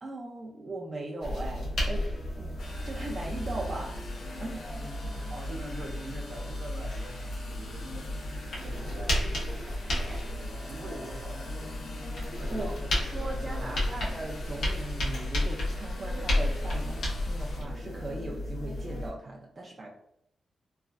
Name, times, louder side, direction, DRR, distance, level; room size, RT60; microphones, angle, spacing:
voice 1, 0.0-2.1 2.3-2.5 2.8-4.0 4.4-4.8 8.8-8.9 12.5-12.7 13.0-19.9, right 2 dB, 30° right, -2 dB, 0.4 m, -38 dB
sound 1, 1.2-19.1, left 1 dB, 90° left, 1.1 m, -33 dB
sound 2, 2.6-17.6, left 1 dB, 60° left, 0.7 m, -48 dB
voice 2, 4.7-11.8 12.3-12.7 13.0-14.0, right 1 dB, 65° right, 0 dB, 0.9 m, -45 dB
3.1 x 2.4 x 2.4 m, 0.72 s
wide cardioid pair, 170°, 0 cm